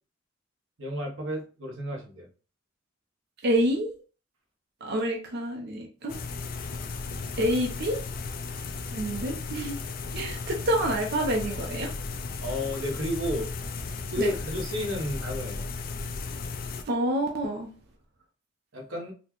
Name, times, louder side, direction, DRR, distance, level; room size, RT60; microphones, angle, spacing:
voice 1, 0.8-2.3 12.4-13.5 14.1-15.7 18.7-19.1, left 1 dB, 90° right, 1 dB, 0.9 m, -32 dB
voice 2, 3.4-3.9 4.8-6.1 7.3-8.0 8.9-9.8 10.1-11.9 14.2-14.3 16.9-17.7, right 1 dB, 55° right, 1 dB, 0.6 m, -27 dB
sound 1, 6.1-16.8, left 4 dB, 45° left, 0.4 m, -35 dB
4.1 x 2.1 x 2.9 m, 0.36 s
head